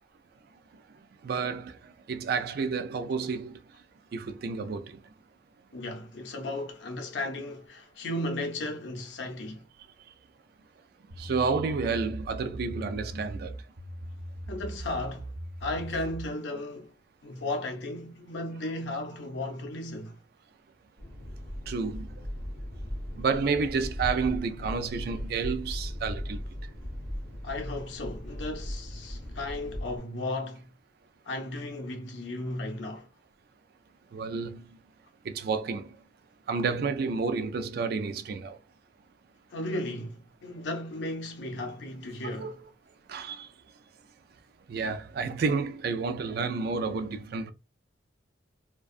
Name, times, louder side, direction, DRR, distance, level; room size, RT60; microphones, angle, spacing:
voice 1, 1.2-3.6 4.1-5.0 11.2-13.6 21.7-22.1 23.2-26.4 34.1-34.7 35.2-36.0 36.5-38.6 42.2-42.5 43.1-43.5 44.7-47.5, right 4 dB, 55° right, 0.3 m, -30 dB
voice 2, 5.7-9.6 14.5-15.3 15.6-16.9 17.2-20.2 27.4-30.7 31.3-33.1 39.5-42.6, left 2 dB, 70° left, 0.5 m, -35 dB
sound 1, 11.1-16.3, right 1 dB, 70° right, 0.8 m, -40 dB
sound 2, 21.0-30.0, equal, 5° left, 0.6 m, -38 dB
2.5 x 2.2 x 2.4 m
head